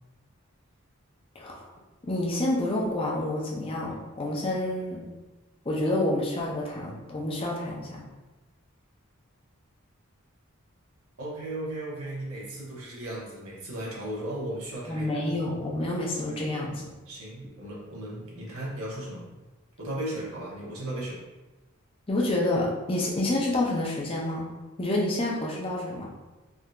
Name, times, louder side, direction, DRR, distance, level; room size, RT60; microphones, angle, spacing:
voice 1, 1.4-1.7 2.1-5.1 5.7-8.0 14.9-16.8 22.1-24.5 24.8-26.1, left 1 dB, 25° left, -3 dB, 0.5 m, -28 dB
voice 2, 11.2-15.2 17.1-19.2 19.8-21.2, right 1 dB, 90° right, -5 dB, 1.0 m, -36 dB
3.5 x 2.6 x 2.3 m, 1.2 s
head